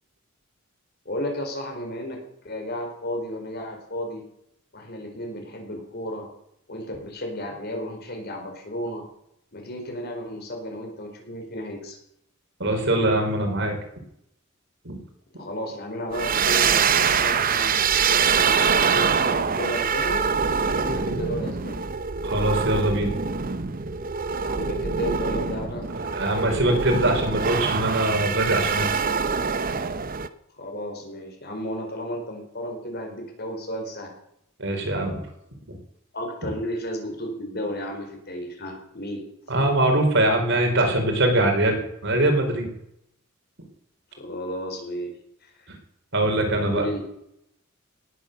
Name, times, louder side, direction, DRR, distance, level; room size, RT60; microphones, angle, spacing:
voice 1, 1.0-4.3 4.7-6.3 6.7-9.0 9.5-12.0 15.4-20.2 20.6-21.9 24.4-25.9 30.6-34.1 36.1-39.2 44.1-45.1 45.6-45.7 46.6-47.0, equal, 50° left, 3 dB, 4.6 m, -33 dB
voice 2, 12.6-13.8 14.8-15.0 22.2-23.1 23.5-23.6 26.0-29.0 34.6-35.2 35.7-35.8 39.5-42.7 46.1-46.8, right 1 dB, 60° right, 3 dB, 4.5 m, -22 dB
sound 1, 16.1-30.3, right 6 dB, 45° right, 0.8 m, -24 dB
18.5 x 10.0 x 6.9 m, 0.78 s
head